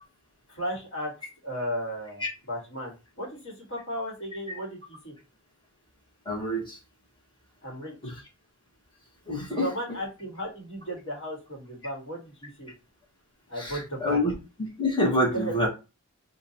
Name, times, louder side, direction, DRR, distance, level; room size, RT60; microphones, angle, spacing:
voice 1, 0.5-1.1 1.4-5.1 7.6-8.2 9.5-12.7 13.5-14.3 15.3-15.6, equal, 70° left, 1.5 m, -35 dB
voice 2, 6.2-6.8 8.0-8.1 9.3-9.7 13.6-13.7 14.0-14.3 14.6-15.7, left 1 dB, 25° left, 1.4 m, -26 dB
3.8 x 2.5 x 2.8 m
head